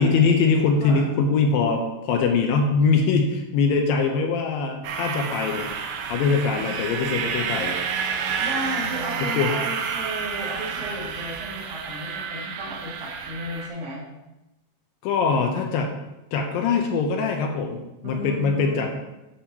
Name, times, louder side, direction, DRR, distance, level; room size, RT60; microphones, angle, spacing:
voice 1, 0.0-5.7 6.1-7.7 9.4-9.5 15.0-16.0 16.3-18.9, left 4 dB, 80° left, 3 dB, 2.2 m, -22 dB
sound 1, 4.8-13.7, right 6 dB, 85° right, 2.0 m, -29 dB
voice 2, 8.4-14.0 18.0-18.8, equal, 65° right, -4 dB, 3.4 m, -34 dB
8.5 x 7.2 x 2.9 m, 0.97 s
omnidirectional pair, 4.6 m